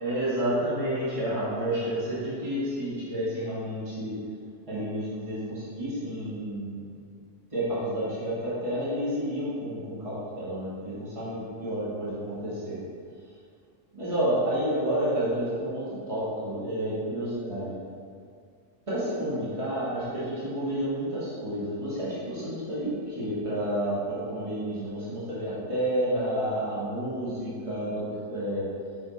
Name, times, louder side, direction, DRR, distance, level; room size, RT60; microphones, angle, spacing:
voice 1, 0.0-4.2 4.7-6.8 7.5-12.8 13.9-17.8 18.9-28.7, right 1 dB, 25° right, -11 dB, 1.7 m, -30 dB
6.2 x 4.6 x 4.1 m, 2.2 s
omnidirectional pair, 1.3 m